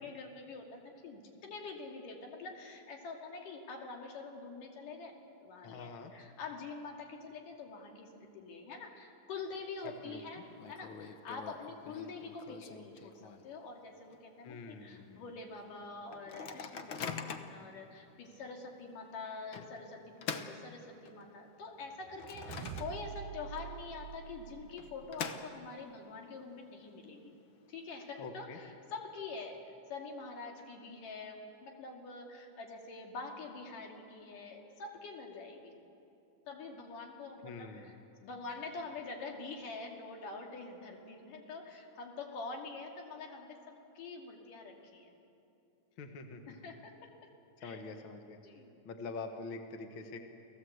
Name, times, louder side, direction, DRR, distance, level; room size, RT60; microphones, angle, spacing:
voice 1, 0.0-10.4 10.7-27.3 27.7-35.8 36.5-38.0 38.2-45.1 46.5-46.9 47.6-47.8 48.4-48.8, left 4 dB, 70° left, 1 dB, 4.0 m, -45 dB
voice 2, 5.6-6.1 9.8-10.4 14.4-15.2 28.2-28.6 37.4-37.9 46.0-46.6 47.6-48.4 48.9-50.2, left 4 dB, 50° left, 5 dB, 1.8 m, -45 dB
Microwave oven, 9.3-9.9 10.2-10.3 10.6-13.7 14.1-14.2 14.4-14.8 15.3-15.4 16.1-17.6 18.3-18.4 19.5-21.3 21.8-23.3 23.6-23.7 24.5-25.9, left 6 dB, 90° left, 1.1 m, -44 dB
sound 1, 22.0-25.3, right 10 dB, 75° right, 2.0 m, -47 dB
30.0 x 18.0 x 8.1 m, 2.8 s
omnidirectional pair, 3.9 m